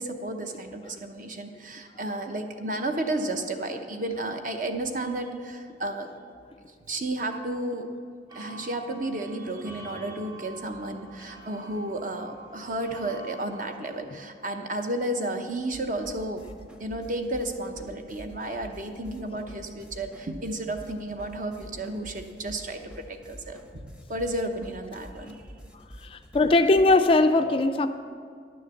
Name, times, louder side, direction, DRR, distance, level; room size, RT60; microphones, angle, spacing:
voice 1, 0.0-6.1 6.9-7.9 8.3-16.4 16.8-25.4, right 1 dB, 45° right, 6 dB, 0.8 m, -32 dB
sound 1, 8.3-14.0, right 2 dB, 20° right, 1.7 m, -46 dB
sound 2, 15.7-27.0, equal, 5° right, 0.7 m, -47 dB
voice 2, 26.0-27.9, left 2 dB, 30° left, 9 dB, 0.3 m, -21 dB
10.5 x 6.4 x 6.9 m, 2.2 s
head